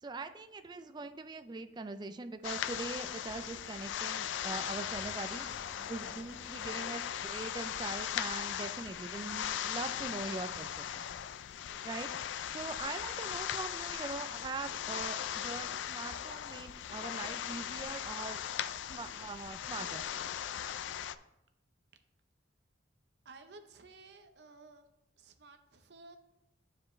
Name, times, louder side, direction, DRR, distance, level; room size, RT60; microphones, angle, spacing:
voice 1, 0.0-5.5 5.9-11.0 11.8-12.2 12.5-18.4 18.9-20.0, right 3 dB, 20° right, 9 dB, 0.3 m, -42 dB
sound 1, 2.4-21.2, left 10 dB, 70° left, 0.3 m, -39 dB
sound 2, 4.6-8.7, equal, 15° left, 0.9 m, -58 dB
voice 2, 23.2-24.9 25.2-26.2, right 3 dB, 60° right, 7 dB, 0.7 m, -54 dB
9.7 x 4.9 x 3.1 m, 0.86 s
head